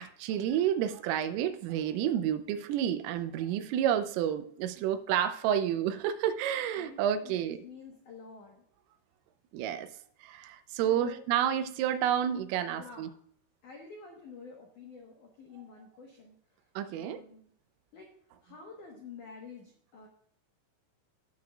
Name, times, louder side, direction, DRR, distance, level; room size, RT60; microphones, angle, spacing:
voice 1, 0.0-7.6 9.5-9.9 10.2-13.1 16.8-17.2, right 10 dB, 80° right, 10 dB, 3.3 m, -30 dB
voice 2, 6.8-8.6 10.8-11.2 12.7-13.1 13.6-17.5 17.9-18.1 18.4-20.1, left 4 dB, 80° left, 1 dB, 1.8 m, -49 dB
17.5 x 6.5 x 2.4 m, 0.62 s
omnidirectional pair, 5.9 m